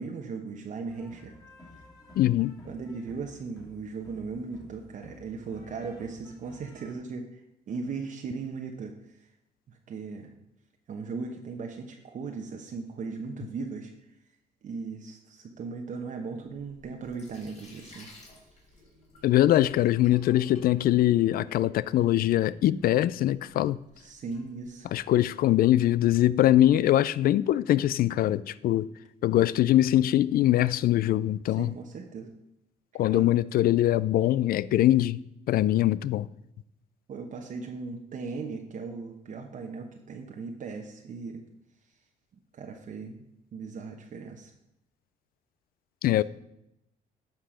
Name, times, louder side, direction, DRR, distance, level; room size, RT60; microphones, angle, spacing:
voice 1, 0.0-1.3 2.6-9.3 9.7-10.3 10.9-13.9 14.6-18.1 24.0-24.9 31.5-32.3 33.1-33.3 37.1-41.4 42.5-43.2 43.5-44.5, right 4 dB, 50° right, 1.0 m, -38 dB
sound 1, 0.9-6.9, left 2 dB, 20° left, 2.8 m, -53 dB
voice 2, 2.2-2.5 19.2-23.8 24.9-28.9 29.2-31.7 32.9-35.2 35.5-36.3 46.0-46.2, left 13 dB, 65° left, 0.4 m, -22 dB
Sink (filling or washing), 16.4-25.2, left 2 dB, 45° left, 3.5 m, -56 dB
10.5 x 6.0 x 5.0 m
cardioid pair, 100°, 16 cm